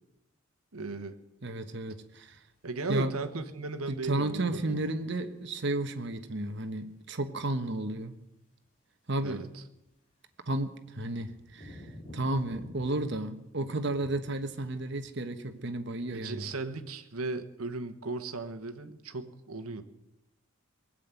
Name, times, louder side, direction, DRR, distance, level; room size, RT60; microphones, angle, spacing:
voice 1, 0.7-1.2 2.6-4.8 9.2-9.6 16.1-19.8, right 3 dB, 90° right, 9 dB, 1.3 m, -36 dB
voice 2, 1.4-2.4 2.9-3.1 3.9-8.1 9.1-9.4 10.5-11.8 12.1-16.5, right 2 dB, 55° right, 8 dB, 1.2 m, -32 dB
sound 1, 2.3-2.4 5.2-5.7 6.2-6.3 8.6-8.7 9.8-9.9 10.3-10.4 10.8-13.2 13.5-15.2 15.5-15.6, left 1 dB, 35° left, 4.2 m, -50 dB
19.5 x 7.6 x 9.0 m, 0.93 s
head